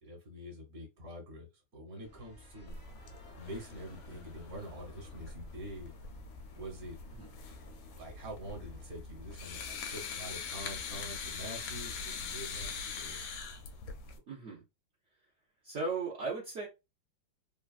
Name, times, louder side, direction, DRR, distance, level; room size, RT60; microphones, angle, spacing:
voice 1, 0.0-2.8 3.3-5.9 6.5-7.0 8.0-13.2, equal, 45° right, -2 dB, 1.3 m, -46 dB
sound 1, 2.0-8.9, left 1 dB, 30° left, 0.6 m, -55 dB
sound 2, 2.7-14.2, left 5 dB, 85° left, 1.4 m, -43 dB
voice 2, 14.3-14.6 15.6-16.7, right 4 dB, 75° right, -4 dB, 0.6 m, -36 dB
3.2 x 2.3 x 2.4 m, 0.25 s
omnidirectional pair, 2.1 m